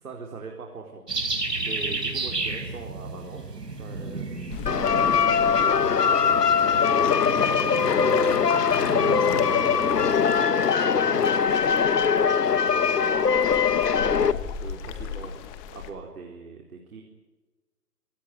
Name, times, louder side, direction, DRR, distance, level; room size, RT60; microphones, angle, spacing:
voice 1, 0.0-3.5 3.8-6.8 7.2-8.3 8.8-10.1 10.4-11.8 12.4-15.3 15.7-17.0, right 4 dB, 60° right, 1 dB, 4.4 m, -41 dB
sound 1, 1.1-10.4, right 3 dB, 85° right, 5.2 m, -33 dB
sound 2, 4.5-15.9, left 8 dB, 15° left, 1.4 m, -36 dB
sound 3, 4.7-14.3, left 6 dB, 80° left, 1.2 m, -21 dB
25.5 x 18.0 x 9.6 m, 1.3 s
figure-of-eight pair, 145°, 47 cm